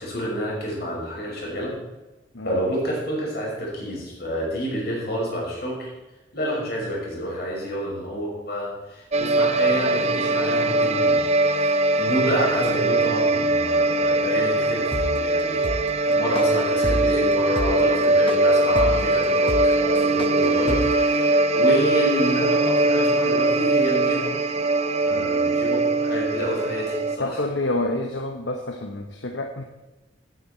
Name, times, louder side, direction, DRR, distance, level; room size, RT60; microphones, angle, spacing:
voice 1, 0.0-1.7 2.4-5.9 6.3-11.2 11.4-15.7 16.1-24.3 25.0-27.4, equal, 55° left, -3 dB, 5.7 m, -28 dB
sound 1, 9.1-27.2, right 2 dB, 35° right, 0.6 m, -21 dB
sound 2, 14.9-21.1, left 1 dB, 25° left, 0.7 m, -29 dB
voice 2, 27.2-29.6, left 2 dB, 75° left, 3 dB, 1.1 m, -28 dB
16.5 x 9.5 x 4.4 m, 1.1 s
head